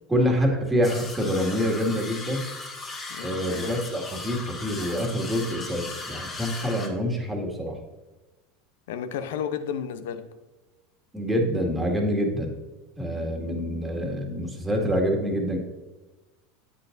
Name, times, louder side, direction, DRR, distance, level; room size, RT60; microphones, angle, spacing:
voice 1, 0.1-2.5 3.2-7.8 11.1-12.5 13.0-15.6, equal, 10° right, 1 dB, 2.1 m, -26 dB
sound 1, 0.8-6.9, left 3 dB, 30° left, 1.6 m, -37 dB
voice 2, 3.1-3.7 6.3-6.5 8.9-10.2, left 8 dB, 70° left, 10 dB, 0.7 m, -33 dB
9.5 x 8.7 x 2.6 m, 1.2 s
hypercardioid pair, 80°, 0 cm